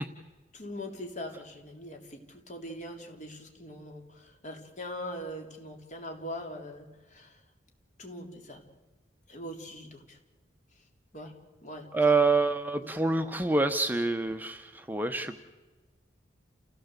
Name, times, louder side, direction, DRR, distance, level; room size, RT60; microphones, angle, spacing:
voice 1, 0.5-7.4 8.0-8.6 9.3-10.2 11.1-11.3 11.6-12.2 12.8-12.9, left 1 dB, 40° left, 3 dB, 3.8 m, -42 dB
voice 2, 11.9-15.4, right 3 dB, 10° right, 7 dB, 0.9 m, -26 dB
29.0 x 17.0 x 8.2 m, 1.2 s
head